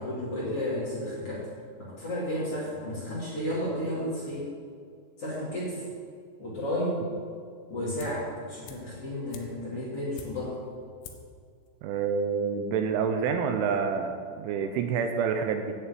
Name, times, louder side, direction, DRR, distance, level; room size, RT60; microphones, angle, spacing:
voice 1, 0.0-1.4 1.8-4.5 5.2-5.8 6.4-7.0 7.7-10.6, left 1 dB, 35° left, -7 dB, 2.8 m, -32 dB
sound 1, 8.0-8.3 8.6-10.6 11.0-11.4 11.7-11.8, left 6 dB, 80° left, 3.3 m, -47 dB
voice 2, 11.8-15.8, right 6 dB, 80° right, 6 dB, 3.1 m, -28 dB
10.5 x 7.2 x 8.5 m, 2.2 s
omnidirectional pair, 5.7 m